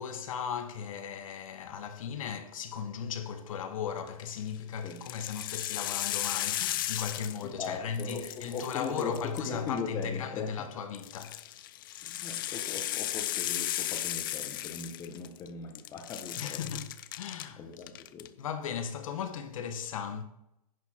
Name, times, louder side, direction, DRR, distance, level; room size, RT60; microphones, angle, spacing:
voice 1, 0.0-11.7 16.4-17.6 18.4-20.2, left 7 dB, 60° left, 1.2 m, -37 dB
sound 1, 4.1-4.4 4.9-7.7 7.9-9.8 10.9-15.5 15.8-17.5 17.8-18.3, left 13 dB, 35° left, 0.4 m, -35 dB
voice 2, 7.4-10.8 12.0-16.6 17.6-18.3, left 5 dB, 15° left, 0.9 m, -39 dB
10.5 x 6.8 x 4.3 m
hypercardioid pair, 170°, 19 cm